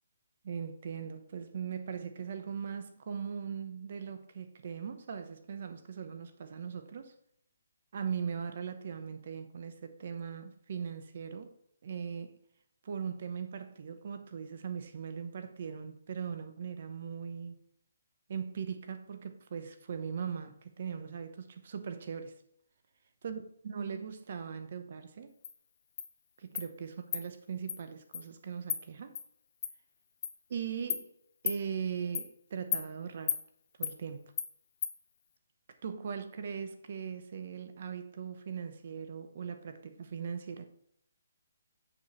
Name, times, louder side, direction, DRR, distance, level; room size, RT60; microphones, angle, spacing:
voice 1, 0.4-7.1 7.9-11.5 11.8-12.4 12.8-17.6 18.3-22.4 23.2-25.3 26.4-29.2 30.5-31.1 31.4-33.4 33.8-34.3 35.8-40.7, right 7 dB, 45° right, 0.9 m, -39 dB
Insect, 25.4-25.5 26.0-26.1 26.6-26.7 27.1-27.2 27.7-27.8 28.1-28.2 28.7-28.8 29.2-29.3 29.6-29.7 30.2-30.3 30.9-31.0 31.5-31.6 32.2-32.3 32.7-32.8 33.3-33.4 33.8-33.9 34.4-34.5 34.8-34.9, left 8 dB, 35° left, 0.7 m, -33 dB
6.9 x 4.9 x 5.5 m
hypercardioid pair, 170°, 0 cm